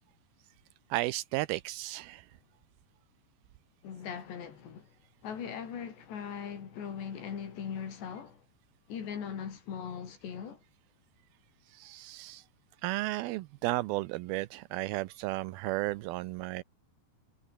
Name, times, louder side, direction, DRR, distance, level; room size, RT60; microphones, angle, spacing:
voice 1, 0.9-2.3 11.7-12.4 12.8-16.6, right 18 dB, 90° right, 2.1 m, -34 dB
voice 2, 3.8-4.9 5.2-8.4 8.9-10.6, left 7 dB, 70° left, 6.0 m, -40 dB
omnidirectional pair, 5.1 m